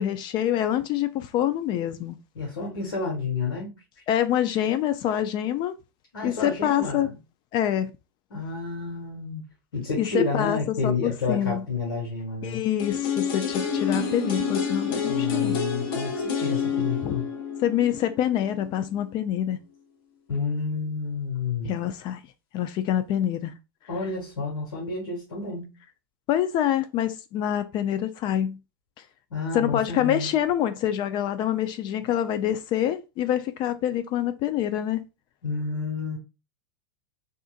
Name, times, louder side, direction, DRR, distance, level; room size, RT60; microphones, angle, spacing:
voice 1, 0.0-2.2 4.1-5.7 6.2-7.1 7.5-7.9 10.0-11.6 12.4-15.6 17.0-17.1 17.6-19.6 21.6-22.2 22.5-23.5 26.3-28.6 29.5-35.0, left 11 dB, 40° left, 0.3 m, -26 dB
voice 2, 2.3-3.7 6.1-7.2 8.3-9.4 9.7-12.6 15.0-17.3 20.3-21.8 23.9-25.7 29.3-30.3 35.4-36.2, left 4 dB, 85° left, 1.5 m, -30 dB
sound 1, 12.8-18.7 19.0-19.1, left 6 dB, 70° left, 0.9 m, -28 dB
3.6 x 2.5 x 2.4 m
hypercardioid pair, 110°, 12 cm